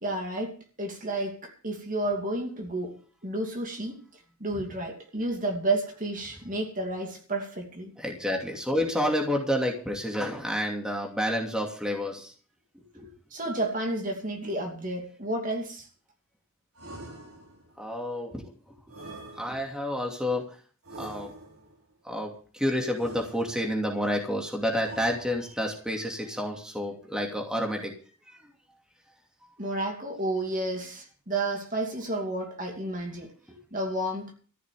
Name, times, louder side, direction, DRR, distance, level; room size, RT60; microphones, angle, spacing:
voice 1, 0.0-3.0 3.2-4.0 4.4-7.9 13.3-15.9 29.6-33.3 33.7-34.3, right 2 dB, 35° right, 2.5 m, -31 dB
voice 2, 8.0-12.3 12.7-13.1 17.8-18.7 19.4-20.5 21.0-21.3 22.0-27.9 28.3-28.4 33.5-33.6, equal, 5° right, 2.7 m, -29 dB
sound 1, 16.8-17.8 18.9-19.9 20.8-21.8 22.9-23.8 24.8-25.7, right 2 dB, 80° right, 6.0 m, -45 dB
14.5 x 6.4 x 9.4 m
head